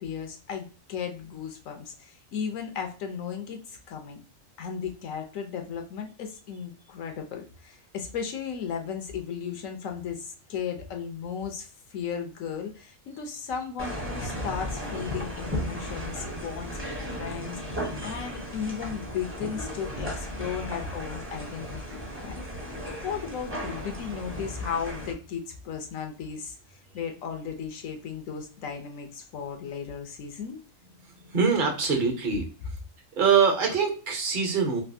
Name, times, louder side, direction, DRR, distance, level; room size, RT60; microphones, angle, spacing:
voice 1, 0.0-4.2 4.6-22.5 23.0-30.6, left 7 dB, 80° left, 4 dB, 1.1 m, -35 dB
sound 1, 13.8-25.1, equal, 15° right, 0.6 m, -35 dB
voice 2, 31.2-32.5 33.2-34.8, right 6 dB, 45° right, 3 dB, 0.9 m, -24 dB
3.3 x 2.6 x 2.6 m, 0.38 s
omnidirectional pair, 1.4 m